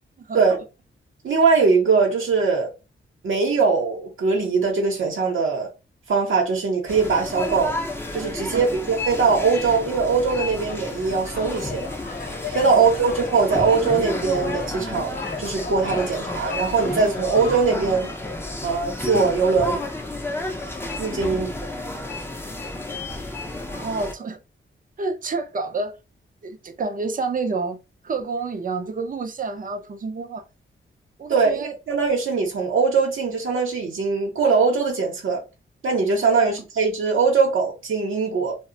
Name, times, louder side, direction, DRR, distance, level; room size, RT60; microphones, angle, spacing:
voice 1, 1.2-2.7 3.2-5.7 6.1-7.8 8.1-11.9 12.5-18.1 18.6-19.8 21.0-21.5 31.3-35.4 35.8-38.6, right 4 dB, 70° right, 0.8 m, -21 dB
sound 1, 6.9-24.1, left 2 dB, 10° left, 0.6 m, -31 dB
sound 2, 10.7-17.8, left 4 dB, 45° left, 0.8 m, -36 dB
voice 2, 23.7-24.4 25.0-25.9 26.4-27.8 28.0-30.4 31.2-31.7 36.4-36.5, right 3 dB, 40° right, 0.6 m, -29 dB
2.1 x 2.0 x 3.7 m
cardioid pair, 85°, 21 cm